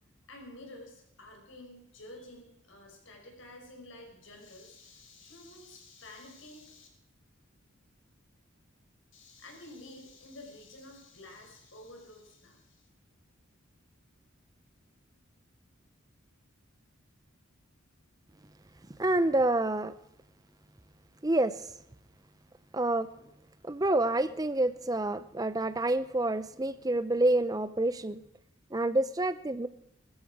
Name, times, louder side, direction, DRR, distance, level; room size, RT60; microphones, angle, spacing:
voice 1, 0.3-6.9 9.1-12.9, left 1 dB, 70° left, 1 dB, 5.5 m, -50 dB
voice 2, 19.0-19.9 21.2-21.7 22.7-23.1 23.6-28.2 28.7-29.7, right 2 dB, 15° right, 13 dB, 0.6 m, -28 dB
18.5 x 13.5 x 4.8 m, 0.79 s
head